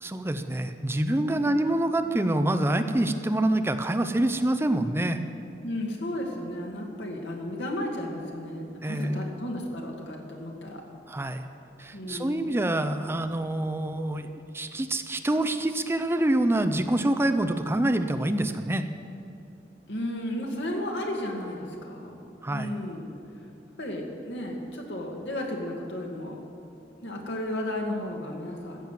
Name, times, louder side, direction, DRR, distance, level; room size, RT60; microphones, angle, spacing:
voice 1, 0.0-5.2 8.8-9.2 11.1-11.5 11.8-14.3 14.5-18.9 22.4-22.7, right 1 dB, 15° right, 8 dB, 0.5 m, -26 dB
voice 2, 1.3-1.6 5.6-10.8 11.9-12.6 19.9-22.1 22.5-23.1 23.4-23.5 23.8-26.4 27.0-28.9, left 1 dB, 85° left, 0 dB, 2.2 m, -34 dB
15.0 x 7.5 x 7.5 m, 2.7 s
head